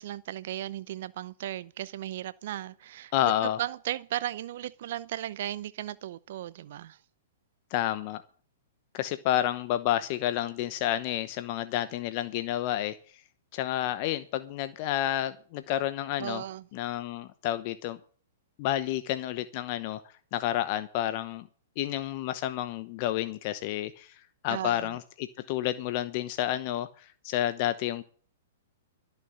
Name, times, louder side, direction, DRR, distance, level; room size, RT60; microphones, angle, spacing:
voice 1, 0.0-3.1 3.6-7.0 16.2-16.6 24.5-24.9, right 13 dB, 60° right, 0.6 m, -36 dB
voice 2, 3.1-3.6 7.7-8.2 8.9-13.0 13.5-16.5 16.7-18.0 18.6-20.0 20.3-21.5 21.8-28.0, left 12 dB, 45° left, 0.9 m, -30 dB
14.0 x 6.8 x 8.7 m
hypercardioid pair, 125°, 0 cm